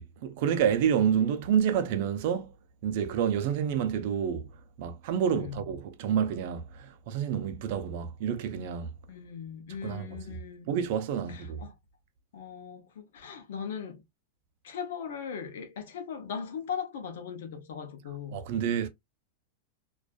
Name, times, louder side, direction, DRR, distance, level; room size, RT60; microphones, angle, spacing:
voice 1, 0.0-2.5 2.8-4.5 4.8-8.9 9.8-10.4 10.7-11.6 18.3-18.9, right 8 dB, 55° right, 0.5 m, -28 dB
voice 2, 5.3-5.7 9.1-10.7 11.3-11.7 12.3-14.0 14.6-18.5, left 7 dB, 80° left, 0.6 m, -39 dB
2.5 x 2.3 x 2.2 m
supercardioid pair, 155°, 0 cm